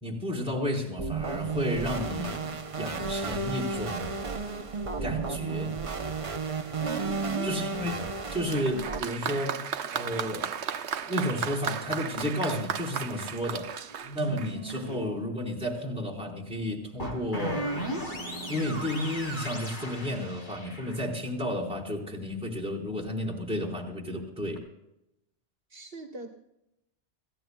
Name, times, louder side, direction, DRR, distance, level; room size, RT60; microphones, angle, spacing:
voice 1, 0.0-4.1 5.0-5.8 7.4-8.0 8.3-9.6 9.9-10.5 11.1-13.7 14.1-17.7 18.5-24.6, left 1 dB, 5° right, -4 dB, 4.2 m, -32 dB
sound 1, 1.0-9.0, right 4 dB, 35° right, 0.7 m, -33 dB
voice 2, 6.8-7.7 25.7-26.3, right 3 dB, 60° right, 2 dB, 1.5 m, -39 dB
Applause, 8.5-15.0, right 7 dB, 85° right, 1.0 m, -35 dB
sound 2, 12.1-12.2 13.9-15.2 17.0-21.0 24.5-24.6, right 1 dB, 45° left, 3.6 m, -37 dB
28.5 x 16.0 x 2.3 m, 0.86 s
omnidirectional pair, 1.1 m